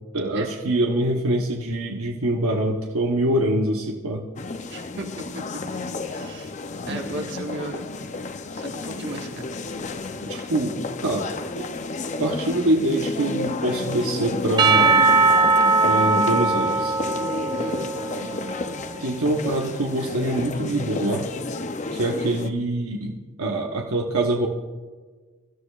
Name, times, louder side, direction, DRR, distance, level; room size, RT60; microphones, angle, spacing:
voice 1, 0.1-4.2 6.9-7.2 10.3-10.8 11.0-11.7 12.2-15.0 15.8-17.0 19.0-21.3 21.9-24.5, right 1 dB, 80° right, 1 dB, 1.0 m, -24 dB
sound 1, 4.4-22.5, left 3 dB, 35° left, 0.5 m, -31 dB
voice 2, 4.7-5.6 6.1-6.5 6.9-8.2 8.6-9.4 17.6-18.0, right 2 dB, 55° right, 2 dB, 1.5 m, -36 dB
Percussion / Church bell, 14.6-18.8, right 3 dB, 20° right, 0.6 m, -20 dB
23.0 x 13.0 x 2.4 m, 1.4 s
head